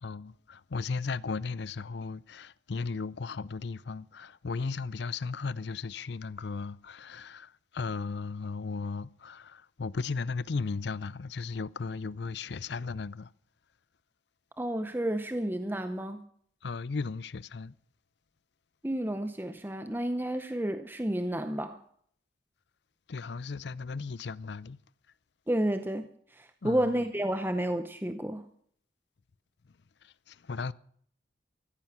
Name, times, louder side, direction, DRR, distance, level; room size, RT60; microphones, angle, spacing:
voice 1, 0.0-13.3 16.6-17.7 23.1-24.8 26.6-26.9 30.0-30.7, left 4 dB, 65° left, 0.5 m, -36 dB
voice 2, 14.6-16.2 18.8-21.8 25.5-26.0 26.3-28.5, right 1 dB, 10° right, 0.7 m, -31 dB
15.0 x 14.5 x 5.9 m
head